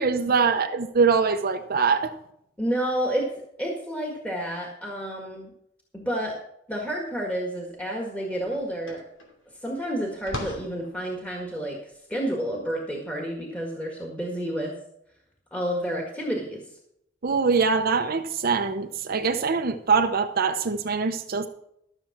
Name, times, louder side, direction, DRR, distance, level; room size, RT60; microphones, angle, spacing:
voice 1, 0.0-2.1 17.2-21.5, right 5 dB, 50° right, 6 dB, 0.7 m, -23 dB
voice 2, 2.6-5.5 5.9-6.4 6.7-9.0 9.6-14.7 15.5-16.6, right 1 dB, 10° left, -1 dB, 1.7 m, -30 dB
sound 1, 7.8-14.2, left 1 dB, 90° left, 2.8 m, -42 dB
13.5 x 6.8 x 5.9 m, 0.76 s
head